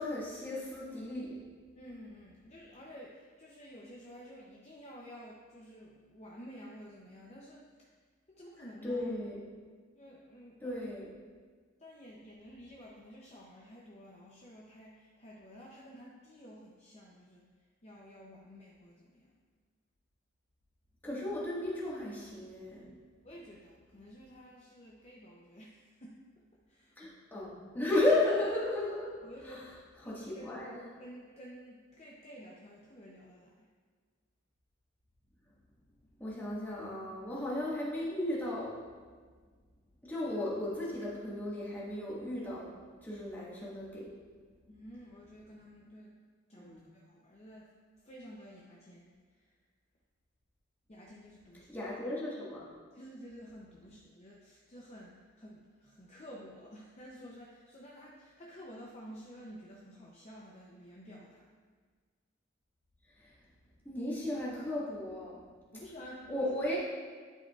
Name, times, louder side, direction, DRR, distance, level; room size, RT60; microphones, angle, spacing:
voice 1, 0.0-1.4 8.8-9.3 10.6-11.1 21.0-22.9 27.0-29.1 29.4-29.6 30.0-30.8 36.2-38.8 40.0-42.7 43.0-44.1 46.5-46.8 51.7-52.7 63.2-63.3 63.8-65.4 66.3-66.8, left 1 dB, 10° left, -7 dB, 1.7 m, -34 dB
voice 2, 1.8-7.9 8.4-9.1 9.9-10.8 11.8-17.5 17.8-19.3 23.2-27.1 29.2-30.6 31.0-33.7 44.7-46.2 46.5-47.7 48.0-49.5 50.9-51.7 52.9-61.5 65.7-66.5, equal, 35° left, -4 dB, 0.7 m, -51 dB
11.5 x 4.9 x 2.4 m, 1.5 s
head